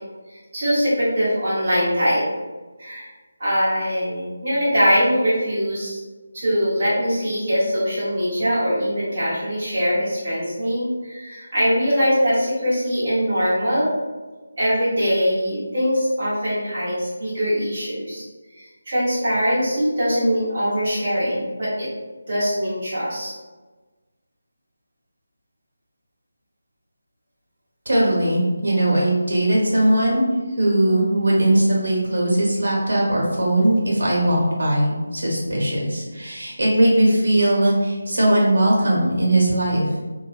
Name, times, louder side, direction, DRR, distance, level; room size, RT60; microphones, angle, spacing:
voice 1, 0.3-2.3 2.8-3.1 3.4-6.0 6.3-13.9 14.6-18.2 18.5-21.9 22.3-23.3, equal, 30° right, -11 dB, 1.2 m, -22 dB
voice 2, 27.8-30.2 30.6-39.8, right 1 dB, 70° right, -4 dB, 1.2 m, -19 dB
2.6 x 2.2 x 2.5 m, 1.3 s
figure-of-eight pair, 180°, 0 cm